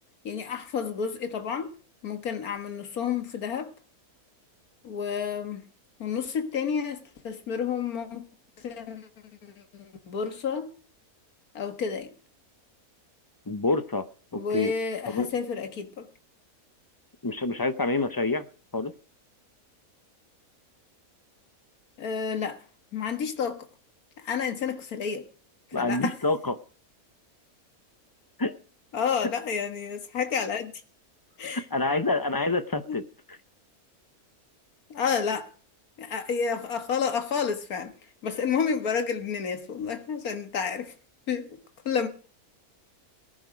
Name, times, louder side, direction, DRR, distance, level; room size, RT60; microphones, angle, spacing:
voice 1, 0.2-1.7 2.0-3.7 4.8-5.7 6.0-8.3 8.6-9.1 9.4-10.7 11.5-12.1 14.3-16.1 22.0-22.6 22.9-23.7 24.2-25.3 25.8-26.1 28.9-30.7 31.4-31.7 32.9-33.0 34.9-35.5 36.0-37.9 38.2-40.9 41.3-41.6 41.9-42.1, left 6 dB, 75° left, 2.0 m, -30 dB
voice 2, 13.5-14.0 14.3-14.7 15.1-15.3 17.2-18.5 18.7-18.9 25.7-26.5 28.4-28.5 31.5-33.0, left 3 dB, 30° left, 0.4 m, -27 dB
19.0 x 10.0 x 5.1 m
omnidirectional pair, 1.6 m